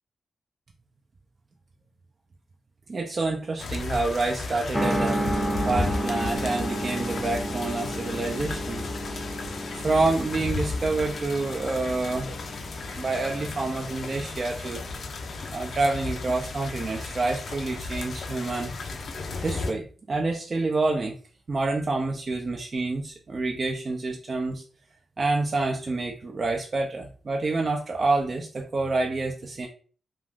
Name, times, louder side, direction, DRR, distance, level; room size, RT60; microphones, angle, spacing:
voice 1, 2.9-8.9 9.7-12.3 12.9-14.8 15.5-18.7 19.4-21.2 21.5-24.6 25.2-29.7, right 3 dB, 50° right, 0 dB, 0.5 m, -28 dB
sound 1, 3.6-19.7, left 3 dB, 70° left, 0.5 m, -34 dB
sound 2, 4.7-15.6, right 1 dB, 10° left, 0.6 m, -32 dB
2.5 x 2.4 x 3.5 m, 0.40 s
supercardioid pair, 50°, 0 cm